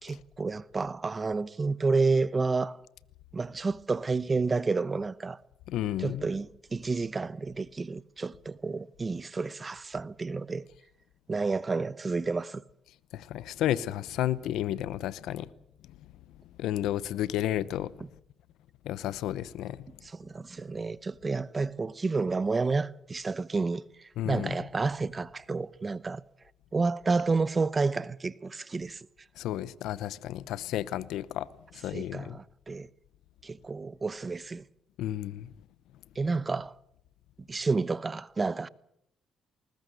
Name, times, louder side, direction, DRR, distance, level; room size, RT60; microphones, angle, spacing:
voice 1, 0.0-2.8 3.3-5.4 6.0-10.7 11.3-12.6 20.0-23.8 24.2-26.2 26.7-29.1 31.9-32.9 33.4-34.6 36.2-36.7 37.5-38.7, right 4 dB, 30° right, 0.8 m, -30 dB
voice 2, 5.7-6.2 13.1-15.5 16.6-17.9 18.8-19.8 24.2-24.5 29.4-31.5 31.7-32.4 35.0-35.5, left 12 dB, 85° left, 0.8 m, -32 dB
20.5 x 19.5 x 8.1 m
cardioid pair, 90°, 0 cm